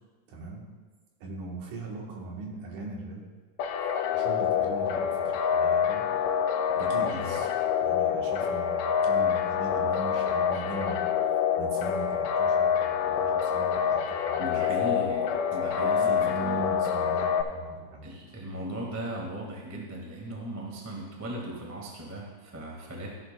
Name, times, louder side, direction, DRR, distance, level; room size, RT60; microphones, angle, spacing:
voice 1, 0.3-0.6 1.2-3.3 4.1-6.0 6.7-7.5 7.8-14.6 14.9-15.0 15.7-18.1, right 3 dB, 70° right, -1 dB, 2.7 m, -40 dB
sound 1, 3.6-17.4, left 7 dB, 80° left, 2.1 m, -26 dB
voice 2, 14.4-16.6 18.0-23.1, right 1 dB, 20° right, -2 dB, 0.4 m, -37 dB
14.0 x 9.8 x 2.3 m, 1.4 s
omnidirectional pair, 3.8 m